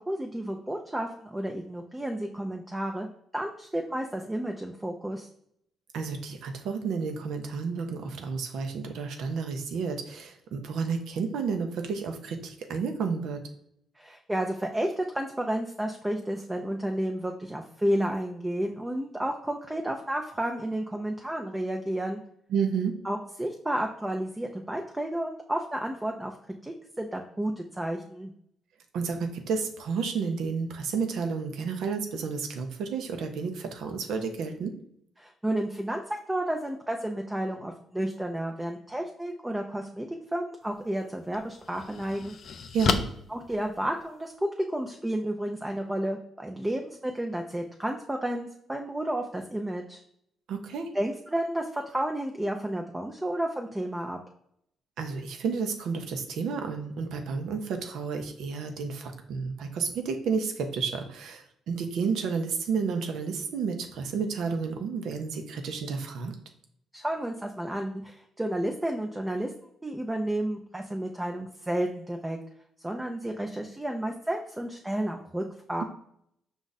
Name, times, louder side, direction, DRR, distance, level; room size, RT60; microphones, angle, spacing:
voice 1, 0.0-3.1 3.3-5.3 14.0-22.2 23.0-26.3 26.6-28.3 35.2-36.0 36.3-42.4 43.3-44.3 44.7-50.0 50.9-54.2 66.9-69.5 69.8-72.4 72.8-75.8, right 1 dB, 10° right, 2 dB, 0.5 m, -31 dB
voice 2, 5.9-13.4 22.5-22.9 28.9-34.7 42.7-43.0 50.5-50.9 55.0-66.3, right 5 dB, 80° right, 5 dB, 0.6 m, -31 dB
sound 1, 40.6-40.8 41.3-44.4, left 6 dB, 55° left, 0.4 m, -32 dB
5.2 x 2.4 x 3.9 m, 0.72 s
cardioid pair, 90°, 0 cm